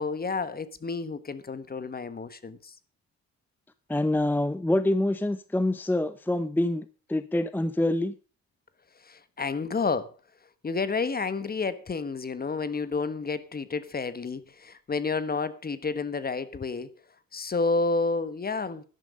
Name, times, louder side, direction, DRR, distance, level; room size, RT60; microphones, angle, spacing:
voice 1, 0.0-2.7 9.0-10.1 10.6-16.9 17.3-18.8, left 4 dB, 30° left, 1.3 m, -30 dB
voice 2, 3.9-8.2, left 1 dB, 5° left, 0.6 m, -26 dB
12.0 x 11.0 x 5.3 m
cardioid pair, 90°, 30 cm